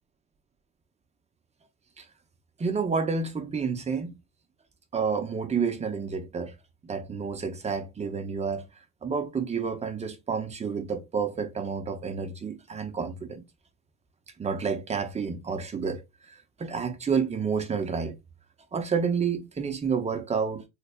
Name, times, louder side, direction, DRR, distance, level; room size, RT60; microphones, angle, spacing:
voice 1, 2.6-4.2 4.9-6.5 6.8-8.7 9.0-13.4 14.4-16.0 16.3-18.2 18.7-20.7, right 5 dB, 20° right, 0.7 m, -29 dB
3.3 x 3.3 x 2.4 m
supercardioid pair, 110°, 33 cm